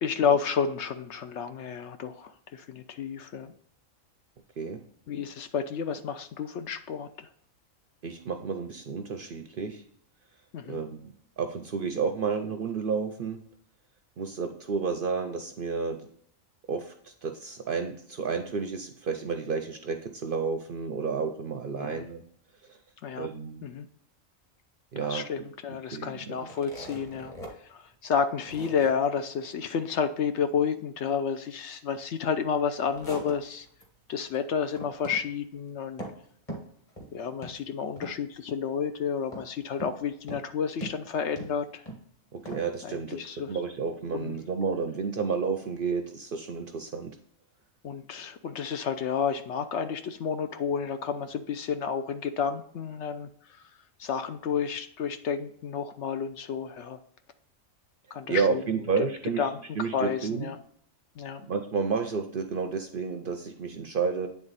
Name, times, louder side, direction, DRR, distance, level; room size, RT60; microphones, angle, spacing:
voice 1, 0.0-3.5 5.1-7.3 10.5-10.8 21.8-22.1 23.0-23.3 23.6-23.9 25.0-27.3 27.7-33.7 34.1-36.0 37.1-41.8 42.8-43.5 44.1-44.4 47.8-53.3 54.0-57.0 58.1-58.6 59.0-59.6 59.9-60.6 61.2-61.5, left 7 dB, 65° left, 9 dB, 0.8 m, -31 dB
voice 2, 8.0-9.8 10.7-13.4 14.2-16.1 16.7-22.2 23.2-23.7 24.9-25.2 25.9-26.4 42.3-43.2 43.5-47.2 58.3-59.5 59.8-60.5 61.5-64.3, right 5 dB, 55° right, 6 dB, 0.6 m, -31 dB
sound 1, 26.4-27.5 27.9-28.0 28.5-28.9 32.6-33.8 34.2-34.4 34.7-35.2 35.5-36.2 36.5-37.1 37.4-37.6 38.0-38.4 39.3-40.0 40.3-40.5 40.8-42.0 42.4-42.6, right 1 dB, 25° left, 1.7 m, -41 dB
9.2 x 3.7 x 4.0 m, 0.63 s
omnidirectional pair, 1.4 m